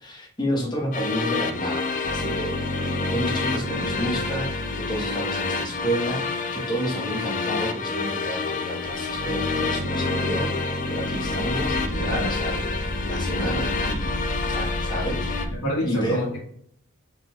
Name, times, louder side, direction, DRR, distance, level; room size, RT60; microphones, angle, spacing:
voice 1, 0.0-2.6 3.1-10.5 10.9-12.6 13.0-14.1 14.4-15.5 15.8-16.2, equal, 20° left, -1 dB, 1.2 m, -30 dB
sound 1, 0.9-15.5, left 4 dB, 40° left, 0.4 m, -29 dB
sound 2, 2.0-6.1 8.8-15.6, equal, 45° right, 1.1 m, -31 dB
voice 2, 15.5-16.4, equal, 75° left, -8 dB, 1.5 m, -27 dB
4.5 x 3.9 x 2.3 m, 0.65 s
head